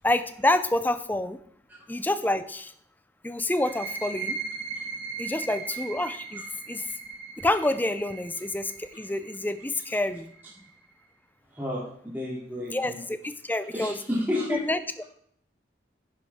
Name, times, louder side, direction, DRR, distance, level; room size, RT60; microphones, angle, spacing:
voice 1, 0.0-1.4 1.9-2.7 3.2-4.4 5.2-6.4 6.7-6.8 7.4-10.3 12.7-14.0 14.5-15.0, left 1 dB, 10° left, 12 dB, 0.5 m, -28 dB
sound 1, 3.5-10.9, right 4 dB, 70° right, 1.6 m, -38 dB
voice 2, 11.5-13.0 13.7-14.6, left 1 dB, 10° right, -7 dB, 2.7 m, -31 dB
10.5 x 10.0 x 3.6 m, 0.65 s
head